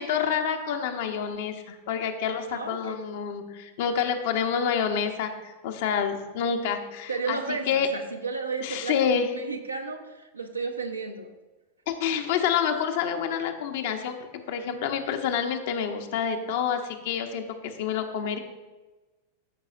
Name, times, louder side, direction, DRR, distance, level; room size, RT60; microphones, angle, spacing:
voice 1, 0.0-7.4 7.7-7.9 8.6-9.3 11.9-14.1 14.5-18.4, left 7 dB, 50° left, 6 dB, 0.9 m, -28 dB
voice 2, 2.5-3.0 7.1-11.3, right 4 dB, 80° right, 4 dB, 0.9 m, -33 dB
13.5 x 5.6 x 2.5 m, 1.1 s
figure-of-eight pair, 90°, 0 cm